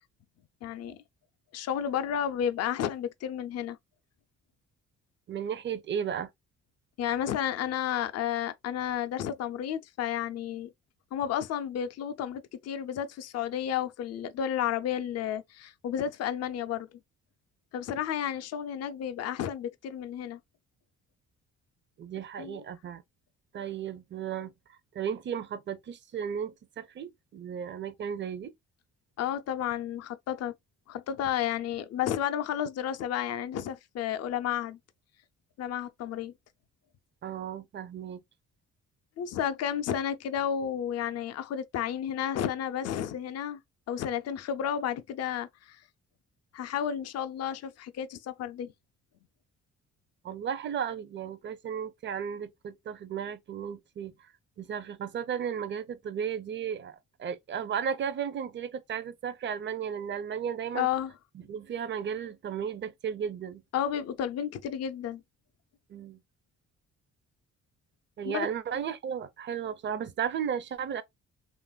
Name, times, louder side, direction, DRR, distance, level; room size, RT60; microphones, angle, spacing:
voice 1, 0.6-1.0 1.5-3.8 7.0-10.7 11.1-16.9 17.7-20.4 22.4-22.6 29.2-30.5 30.9-34.8 35.6-36.3 39.2-43.6 43.9-45.8 46.5-48.7 60.7-61.1 63.7-65.2 68.2-68.5, left 9 dB, 55° left, 0.5 m, -32 dB
voice 2, 5.3-6.3 22.0-23.0 23.5-24.5 24.9-28.5 37.2-38.2 50.2-54.1 54.6-60.9 61.3-63.6 65.9-66.2 68.2-71.0, right 8 dB, 40° right, 0.5 m, -34 dB
2.9 x 2.5 x 2.2 m
cardioid pair, 90°, 30 cm